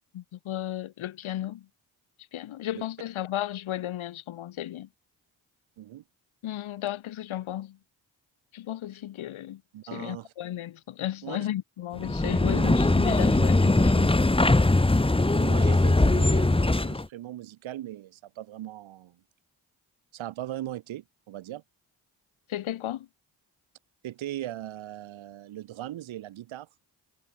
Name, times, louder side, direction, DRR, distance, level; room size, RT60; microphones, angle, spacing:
voice 1, 0.1-1.7 2.3-4.9 6.4-7.8 8.5-9.6 9.9-14.2 22.5-23.1, left 13 dB, 85° left, 2.1 m, -34 dB
voice 2, 9.7-10.3 11.2-11.4 12.5-12.7 15.0-19.2 20.1-21.6 24.0-26.7, right 13 dB, 80° right, 1.2 m, -39 dB
sound 1, 12.0-17.1, left 2 dB, 10° left, 1.1 m, -21 dB
supercardioid pair, 40°, 47 cm